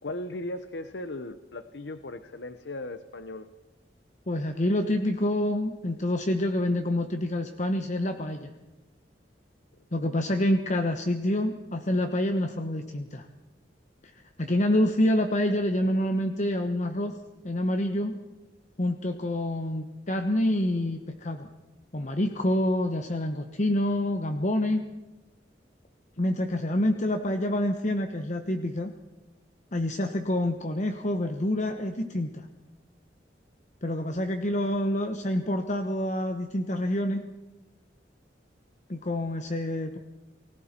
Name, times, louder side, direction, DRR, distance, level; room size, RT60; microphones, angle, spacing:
voice 1, 0.0-3.5, left 2 dB, 70° left, 10 dB, 1.0 m, -37 dB
voice 2, 4.3-8.5 9.9-13.3 14.1-17.2 17.4-18.2 18.8-21.5 21.9-24.8 26.2-28.9 29.7-32.5 33.8-37.3 38.9-40.0, left 1 dB, 45° left, 6 dB, 1.2 m, -27 dB
30.0 x 20.0 x 4.5 m, 1.1 s
head